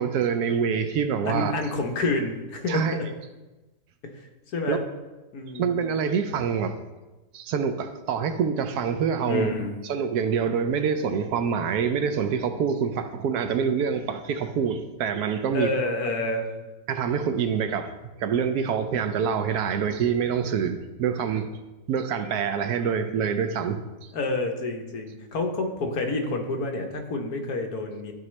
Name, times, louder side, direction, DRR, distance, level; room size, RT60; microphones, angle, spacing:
voice 1, 0.0-1.5 2.7-3.0 4.7-4.8 5.5-6.8 7.3-9.5 9.8-15.7 16.9-17.9 18.2-21.5 21.9-24.1, right 6 dB, 75° right, 8 dB, 1.1 m, -26 dB
voice 2, 1.3-3.1 4.1-4.3 4.5-4.8 5.3-5.7 9.3-9.8 15.5-16.5 24.1-28.1, left 2 dB, 70° left, 4 dB, 1.4 m, -28 dB
12.5 x 4.6 x 3.2 m, 1.1 s
omnidirectional pair, 1.7 m